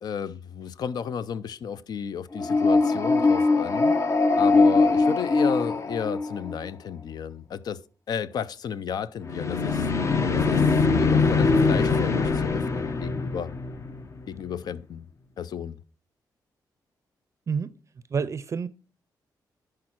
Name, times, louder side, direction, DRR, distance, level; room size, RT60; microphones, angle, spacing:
voice 1, 0.0-4.0 4.4-7.8 8.1-9.9 10.3-10.6 10.9-13.5 14.3-15.1 15.4-15.8, left 7 dB, 70° left, 0.5 m, -33 dB
sound 1, 2.3-6.6 9.2-14.2, left 3 dB, 40° left, 0.8 m, -22 dB
voice 2, 18.1-18.7, right 6 dB, 45° right, 0.5 m, -28 dB
10.5 x 4.8 x 4.4 m
cardioid pair, 105°, 7 cm